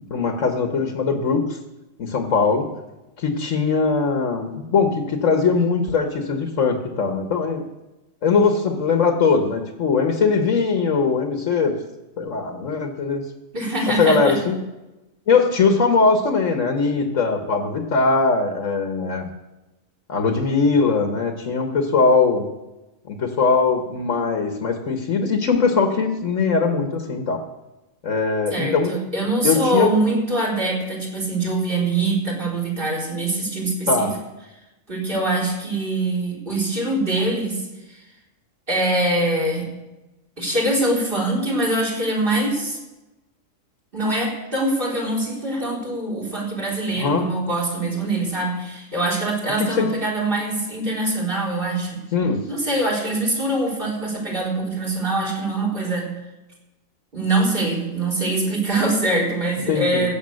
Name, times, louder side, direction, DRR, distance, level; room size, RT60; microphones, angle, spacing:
voice 1, 0.1-1.6 2.0-2.7 3.2-7.6 8.2-11.8 12.2-13.2 13.9-14.6 15.3-19.3 20.1-22.5 23.1-27.4 28.0-28.9 29.4-29.9 33.9-34.1 47.0-47.3 49.6-49.9 52.1-52.5 59.7-60.1, left 4 dB, 70° left, 4 dB, 1.6 m, -20 dB
voice 2, 13.5-14.3 28.5-34.1 34.9-37.6 38.7-39.7 40.4-42.8 43.9-52.0 52.5-56.1 57.1-60.1, right 2 dB, 40° right, -3 dB, 3.9 m, -23 dB
15.5 x 8.3 x 6.4 m, 1.0 s
omnidirectional pair, 1.4 m